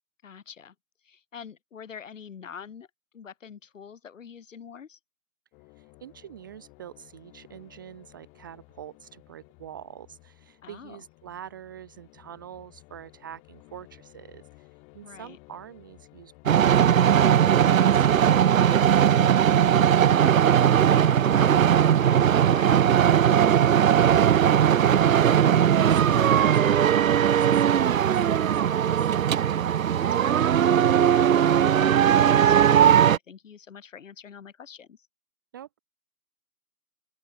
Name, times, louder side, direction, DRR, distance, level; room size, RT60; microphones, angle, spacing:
voice 1, 0.2-0.7 1.0-2.9 3.1-5.0 10.6-11.0 15.0-15.4 20.0-23.6 29.9-35.0, left 7 dB, 55° left, 2.8 m, -44 dB
sound 1, 5.5-22.3, left 29 dB, 15° left, 1.7 m, -55 dB
voice 2, 5.8-14.7 14.9-16.3 24.2-29.1 35.5-35.8, right 10 dB, 15° right, 0.7 m, -45 dB
sound 2, 16.5-33.2, right 9 dB, 60° right, 0.5 m, -19 dB
open air
figure-of-eight pair, 135°, 46 cm